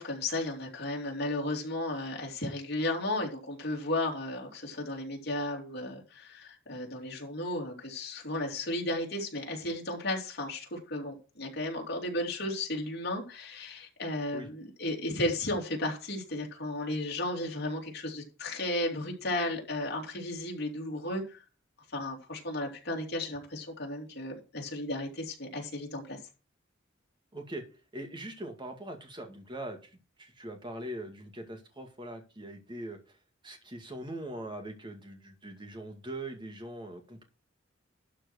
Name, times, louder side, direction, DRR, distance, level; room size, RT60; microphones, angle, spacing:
voice 1, 0.0-21.4 21.9-26.2, left 1 dB, 55° left, 0 dB, 3.4 m, -34 dB
voice 2, 27.3-27.6 27.9-33.2 33.4-37.2, right 1 dB, 25° right, 5 dB, 2.1 m, -42 dB
12.0 x 4.5 x 6.5 m, 0.33 s
head